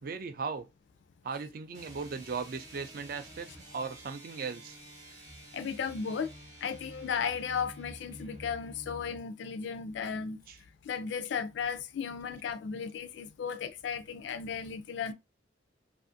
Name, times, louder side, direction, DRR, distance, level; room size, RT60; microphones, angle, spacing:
voice 1, 0.0-0.7 1.2-4.8 10.5-10.6 12.7-12.9, right 5 dB, 50° right, 0.3 m, -38 dB
sound 1, 1.7-9.2, equal, 20° right, 0.8 m, -50 dB
voice 2, 5.5-6.3 6.6-10.4 10.8-15.1, left 6 dB, 65° left, 0.3 m, -35 dB
2.5 x 2.5 x 2.5 m
head